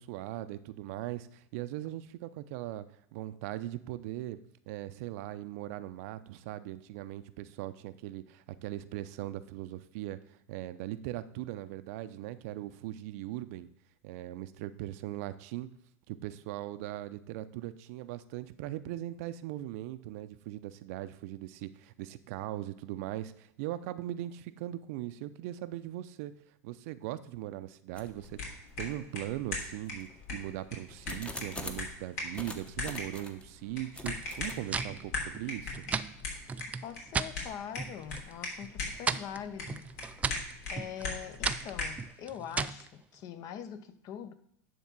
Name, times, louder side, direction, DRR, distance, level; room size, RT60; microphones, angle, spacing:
voice 1, 0.0-2.9 3.1-4.4 4.7-13.7 14.0-15.7 16.1-26.3 26.6-28.4 28.8-35.8, right 14 dB, 65° right, 0.6 m, -39 dB
sound 1, 27.9-28.3 28.9-29.0 29.7-31.9 32.3-33.4 33.9-34.6, left 2 dB, 10° left, 0.9 m, -44 dB
sound 2, 28.2-42.0, left 3 dB, 70° left, 3.1 m, -40 dB
sound 3, 34.0-37.3 37.7-38.3 38.6-42.9, right 5 dB, 15° right, 0.3 m, -36 dB
voice 2, 36.8-39.9 40.7-44.3, left 9 dB, 45° left, 0.7 m, -43 dB
10.5 x 3.6 x 5.9 m
supercardioid pair, 120°, 9 cm